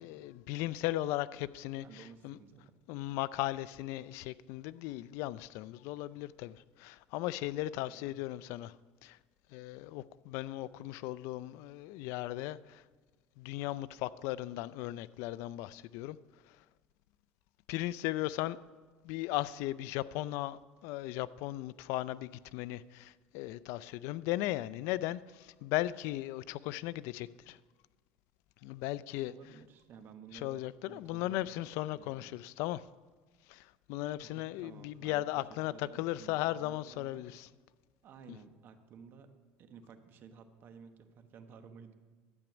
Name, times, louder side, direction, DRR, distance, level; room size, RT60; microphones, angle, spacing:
voice 1, 0.0-2.4 2.9-8.7 9.0-9.2 9.5-12.8 13.4-16.2 17.7-18.6 19.0-27.6 28.6-29.3 30.3-32.8 33.5-37.5 38.3-38.4, left 16 dB, 75° left, 0.4 m, -37 dB
voice 2, 1.7-2.8 7.7-8.1 29.3-31.5 31.9-32.4 34.2-37.2 38.0-39.3 39.6-41.9, right 6 dB, 50° right, 1.2 m, -54 dB
12.0 x 9.0 x 6.1 m
cardioid pair, 125°, 5 cm